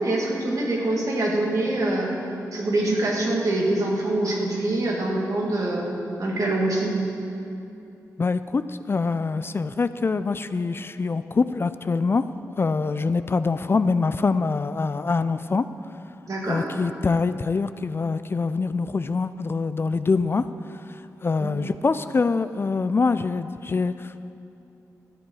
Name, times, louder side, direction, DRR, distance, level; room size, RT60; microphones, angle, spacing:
voice 1, 0.0-5.9 6.2-6.9 16.3-16.7 21.4-21.5, right 2 dB, 60° right, -2 dB, 2.2 m, -25 dB
voice 2, 8.2-15.7 16.5-20.5 20.9-24.3, left 4 dB, 35° left, 12 dB, 0.3 m, -24 dB
12.5 x 7.6 x 4.8 m, 2.7 s
cardioid pair, 60°, 6 cm